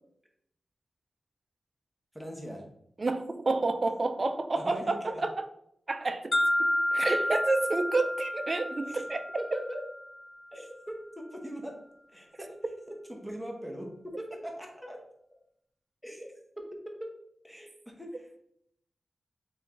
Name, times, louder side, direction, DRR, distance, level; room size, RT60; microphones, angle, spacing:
voice 1, 2.1-2.7 4.5-5.2 8.8-9.0 9.4-9.8 10.5-11.8 12.1-12.6 12.9-15.0 16.0-16.3 16.6-17.1 17.4-18.4, equal, 5° left, 1 dB, 0.8 m, -41 dB
voice 2, 3.0-5.4 5.9-6.3 6.9-9.3, right 3 dB, 35° right, 7 dB, 0.4 m, -29 dB
sound 1, 6.3-10.3, left 1 dB, 45° left, 0.4 m, -30 dB
3.8 x 3.0 x 3.6 m, 0.72 s
wide cardioid pair, 145°, 0 cm